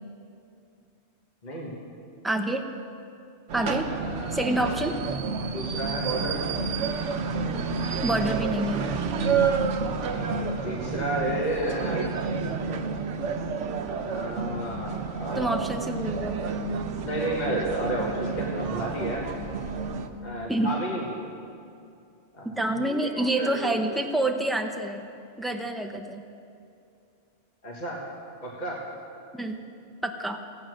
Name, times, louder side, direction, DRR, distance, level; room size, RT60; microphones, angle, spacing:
voice 1, 2.2-2.6 3.5-3.9 4.3-4.9 8.0-8.9 15.4-16.4 20.5-20.7 22.4-25.1 25.4-26.2 29.3-29.6 30.0-30.4, right 1 dB, ahead, 4 dB, 0.5 m, -27 dB
sound 1, 3.5-20.1, right 5 dB, 90° right, 1.1 m, -30 dB
voice 2, 3.9-4.7 5.5-6.4 10.0-12.3 13.8-15.6 17.0-19.2 20.2-21.1 22.3-23.8 27.6-28.0 28.4-28.8, right 1 dB, 40° left, -3 dB, 1.6 m, -32 dB
16.0 x 8.7 x 6.3 m, 2.5 s
omnidirectional pair, 1.2 m